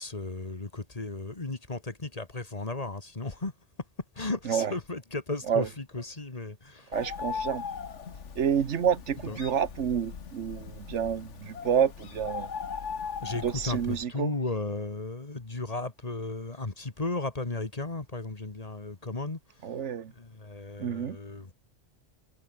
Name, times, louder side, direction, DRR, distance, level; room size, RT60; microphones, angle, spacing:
voice 1, 0.0-3.5 4.2-7.0 9.3-9.4 13.0-19.4 20.2-21.5, left 2 dB, 35° left, 1.9 m, -35 dB
Bird, 6.9-14.0, left 6 dB, 90° left, 1.7 m, -39 dB
voice 2, 6.9-7.6 8.4-12.5 13.4-14.3 19.6-20.1 20.8-21.2, right 8 dB, 85° right, 1.4 m, -28 dB
omnidirectional pair, 1.2 m